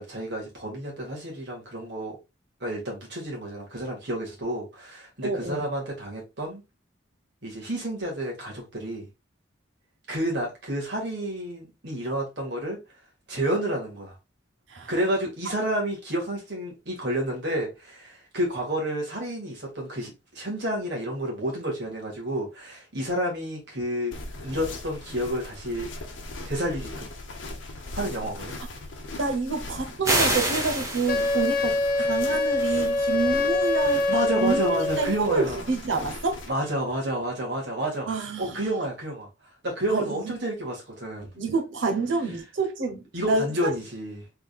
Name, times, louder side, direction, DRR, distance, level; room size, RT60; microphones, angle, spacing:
voice 1, 0.0-2.2 2.6-6.6 7.4-9.1 10.1-12.8 13.3-14.1 14.9-24.2 24.4-25.9 26.5-27.1 27.9-28.6 34.1-35.6 36.5-38.1 38.4-39.3 39.6-41.3 43.1-44.2, right 1 dB, 60° right, 1.9 m, -30 dB
voice 2, 5.2-5.6 14.7-14.9 29.2-34.1 34.4-36.4 38.1-38.7 39.9-40.3 41.3-43.7, right 3 dB, 80° right, 1.0 m, -28 dB
sound 1, 24.1-36.5, left 2 dB, 80° left, 0.9 m, -39 dB
sound 2, 30.0-31.6, right 1 dB, 15° right, 0.9 m, -26 dB
Wind instrument woodwind instrument, 31.1-35.2, left 2 dB, 45° left, 0.3 m, -24 dB
3.8 x 3.6 x 2.4 m
head